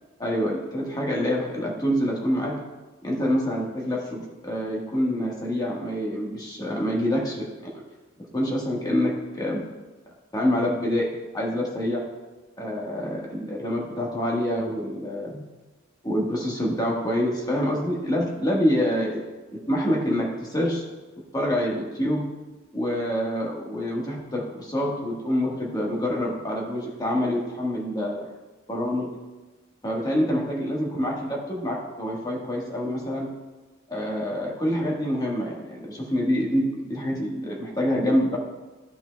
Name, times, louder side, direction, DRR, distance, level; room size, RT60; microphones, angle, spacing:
voice 1, 0.2-2.6 3.0-7.8 8.3-9.6 10.3-12.0 12.6-15.4 16.0-19.3 19.7-20.8 21.3-22.3 22.7-28.3 28.7-29.1 29.8-33.3 33.9-38.4, equal, 20° left, -2 dB, 1.3 m, -26 dB
13.5 x 5.7 x 2.2 m, 1.2 s
head